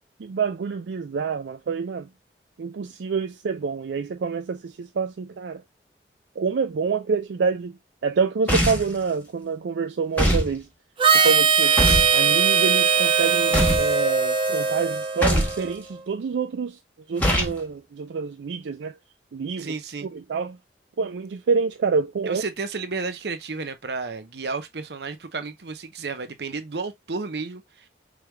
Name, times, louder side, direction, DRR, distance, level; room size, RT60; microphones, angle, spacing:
voice 1, 0.2-2.1 2.6-5.6 6.4-7.7 8.0-10.7 11.1-11.8 12.1-16.8 17.1-19.0 19.3-19.7 20.1-20.6 21.0-22.4, right 5 dB, 90° right, 0.4 m, -27 dB
sound 1, 8.5-9.0 10.2-10.5 11.8-12.1 13.5-13.9 15.2-15.6 17.2-17.6, equal, 10° left, 1.3 m, -21 dB
Harmonica, 11.0-15.7, right 5 dB, 30° right, 0.6 m, -20 dB
voice 2, 19.6-20.1 22.2-27.9, right 4 dB, 70° right, 0.8 m, -32 dB
4.9 x 3.2 x 2.2 m
head